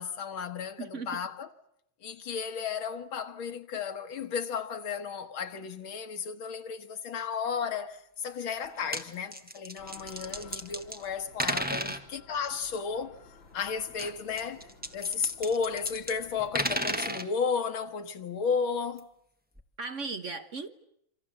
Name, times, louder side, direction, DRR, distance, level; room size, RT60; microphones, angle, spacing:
voice 1, 0.0-1.5 2.0-13.2 13.5-14.7 14.9-19.1, left 6 dB, 85° left, 2.3 m, -33 dB
voice 2, 0.8-1.2 11.7-11.9 19.8-20.8, right 4 dB, 45° right, 1.3 m, -37 dB
sound 1, 8.6-9.0 9.3-11.0 11.4-12.0 13.9-16.1 16.4-17.3 19.0-19.1 19.6-19.7, equal, 5° right, 1.3 m, -33 dB
sound 2, 9.8-17.0, left 4 dB, 70° left, 3.9 m, -54 dB
27.5 x 26.0 x 7.7 m
omnidirectional pair, 2.2 m